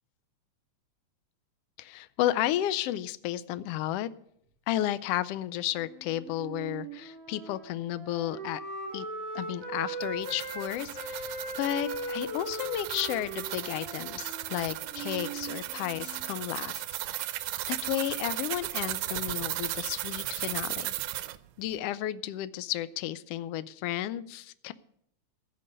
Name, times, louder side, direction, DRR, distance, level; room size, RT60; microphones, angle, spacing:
voice 1, 1.8-4.1 4.7-8.6 8.9-9.1 9.3-17.4 17.7-20.9 21.6-24.7, left 13 dB, 80° left, 15 dB, 1.4 m, -33 dB
Wind instrument woodwind instrument, 5.7-10.6 10.9-16.2, right 2 dB, 65° right, 5.2 m, -39 dB
sound 1, 10.0-21.4, right 15 dB, 90° right, 2.0 m, -36 dB
15.5 x 5.4 x 9.9 m, 0.71 s
omnidirectional pair, 3.3 m